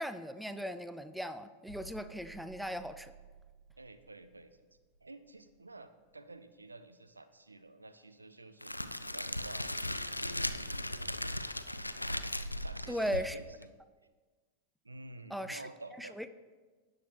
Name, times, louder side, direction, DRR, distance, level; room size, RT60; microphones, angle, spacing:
voice 1, 0.0-3.1 12.9-13.4 15.3-15.6 16.0-16.3, equal, ahead, 11 dB, 0.4 m, -37 dB
sound 1, 1.7-7.4 7.6-7.9, right 4 dB, 60° right, 0.9 m, -57 dB
voice 2, 3.8-4.7 5.0-11.4 12.6-13.5 14.8-16.2, right 2 dB, 80° right, 11 dB, 0.5 m, -51 dB
Crackle, 8.6-13.7, left 1 dB, 85° left, 0.3 m, -37 dB
17.0 x 6.3 x 3.0 m, 1.4 s
figure-of-eight pair, 90°, 0 cm